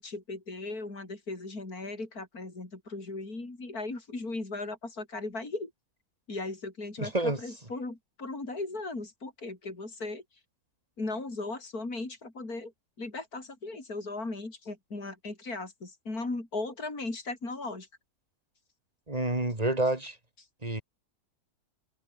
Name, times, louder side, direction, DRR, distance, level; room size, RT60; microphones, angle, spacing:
voice 1, 0.0-5.7 6.3-10.2 11.0-12.7 13.0-17.9 20.4-20.5, left 2 dB, 65° left, 5.7 m, -37 dB
voice 2, 7.0-7.4 19.1-20.2 20.6-20.8, right 2 dB, 20° right, 4.1 m, -28 dB
omnidirectional pair, 1.7 m